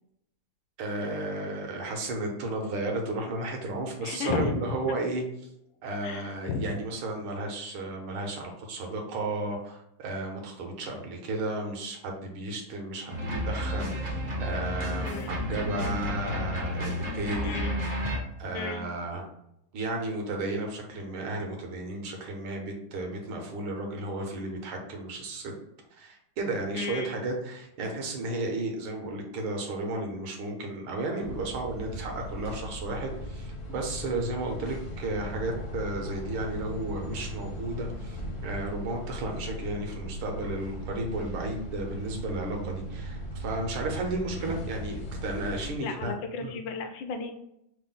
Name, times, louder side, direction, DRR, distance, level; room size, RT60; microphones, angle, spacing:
voice 1, 0.8-5.2 5.8-17.6 18.4-19.3 19.7-25.5 25.9-46.1 46.4-46.5, right 2 dB, 75° right, 2 dB, 1.7 m, -33 dB
voice 2, 4.0-4.6 6.0-6.7 15.0-15.4 17.4-17.7 18.0-18.1 18.5-18.9 26.7-27.1 45.5-47.4, left 4 dB, 75° left, 6 dB, 1.1 m, -34 dB
sound 1, 13.1-18.2, equal, 55° right, 0.4 m, -31 dB
sound 2, 31.2-45.7, equal, 60° left, 0.8 m, -38 dB
5.7 x 2.1 x 3.8 m, 0.79 s
omnidirectional pair, 2.4 m